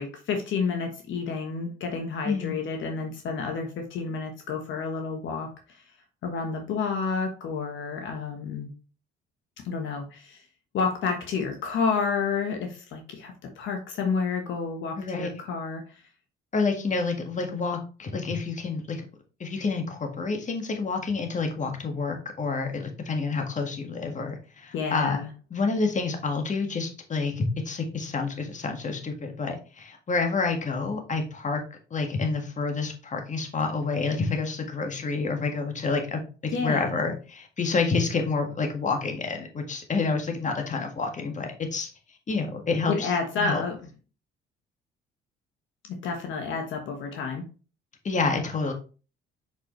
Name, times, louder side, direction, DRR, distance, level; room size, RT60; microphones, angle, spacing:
voice 1, 0.0-5.8 6.2-8.7 9.6-10.4 10.7-16.0 24.7-25.3 36.5-37.0 42.9-43.8 45.9-47.4, left 5 dB, 70° left, 4 dB, 1.3 m, -30 dB
voice 2, 2.2-2.6 15.0-15.3 16.5-19.0 19.4-25.2 25.5-31.6 31.9-41.9 42.3-43.1 43.4-43.6 48.0-48.7, left 4 dB, 35° left, 4 dB, 1.7 m, -28 dB
6.2 x 5.3 x 3.2 m, 0.35 s
supercardioid pair, 80°, 21 cm